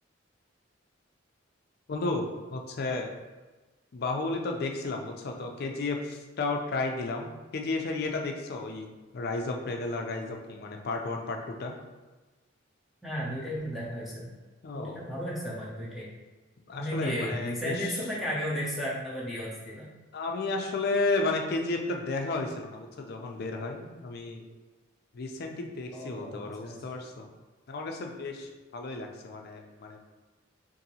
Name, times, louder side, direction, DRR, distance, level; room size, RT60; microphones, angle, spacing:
voice 1, 1.9-3.1 3.9-8.9 9.1-11.7 14.6-15.0 16.7-17.9 20.1-24.4 25.1-27.2 27.7-30.0, left 3 dB, 55° left, 3 dB, 0.4 m, -33 dB
voice 2, 13.0-14.3 14.7-16.1 16.8-19.9 25.9-26.8, equal, ahead, -7 dB, 0.6 m, -34 dB
3.8 x 2.6 x 2.7 m, 1.2 s
head